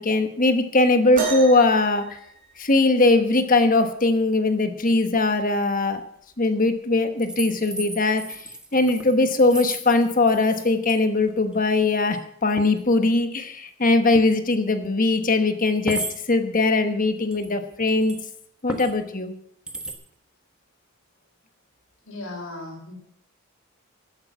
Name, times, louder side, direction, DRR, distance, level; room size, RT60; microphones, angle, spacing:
voice 1, 0.0-2.0 2.6-6.0 6.4-8.4 8.7-16.0 16.3-18.1 18.6-19.3, left 2 dB, 40° left, 8 dB, 1.3 m, -20 dB
sound 1, 1.2-3.1 4.7-4.8 5.6-5.8 6.8-6.9, right 5 dB, 40° right, 3.6 m, -32 dB
sound 2, 7.2-10.9 11.2-11.7 11.9-12.2 12.6-12.8 14.1-14.3 14.8-14.9 15.8-16.2 17.3-18.3 18.7-19.0 19.7-19.9, right 1 dB, 5° right, 1.3 m, -35 dB
voice 2, 22.0-22.9, left 2 dB, 65° left, 1 dB, 4.7 m, -36 dB
14.0 x 8.8 x 6.0 m, 0.68 s
head